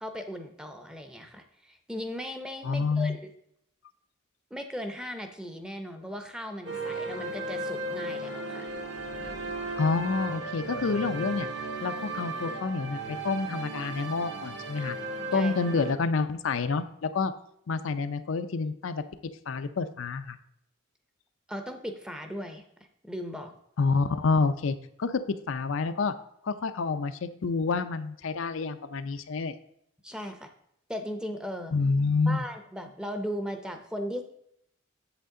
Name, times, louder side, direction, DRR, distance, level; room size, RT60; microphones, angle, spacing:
voice 1, 0.0-3.3 4.5-8.7 15.3-15.5 21.5-22.6 23.0-23.5 30.0-30.5 30.9-31.7 32.3-34.2, equal, 5° right, 6 dB, 0.6 m, -37 dB
voice 2, 2.6-3.2 9.8-11.5 11.8-15.0 15.3-17.3 17.7-19.0 19.5-20.4 23.8-26.1 26.4-29.6 31.7-32.4, left 4 dB, 70° left, 10 dB, 0.5 m, -28 dB
sound 1, 6.7-15.9, right 2 dB, 55° right, 1.3 m, -35 dB
8.0 x 7.3 x 3.7 m, 0.73 s
head